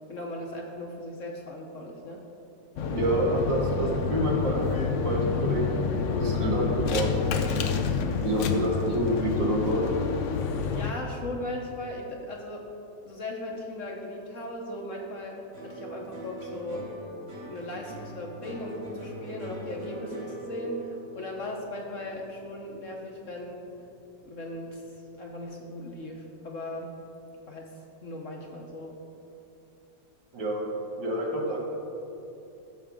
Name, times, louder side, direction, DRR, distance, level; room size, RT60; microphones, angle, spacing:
voice 1, 0.1-2.2 10.7-12.7 13.0-16.9 17.5-23.6 24.2-26.9 27.5-27.7 28.0-28.9, left 1 dB, 50° left, 0 dB, 1.2 m, -38 dB
sound 1, 2.8-10.9, left 6 dB, 65° left, 0.7 m, -28 dB
voice 2, 2.9-5.7 6.1-7.8 8.2-9.9 30.3-30.7 31.0-31.8, right 1 dB, 85° right, -4 dB, 2.6 m, -28 dB
sound 2, 15.5-24.0 24.3-25.0, right 2 dB, 50° right, 2.2 m, -42 dB
15.0 x 6.2 x 3.7 m, 2.8 s
omnidirectional pair, 1.9 m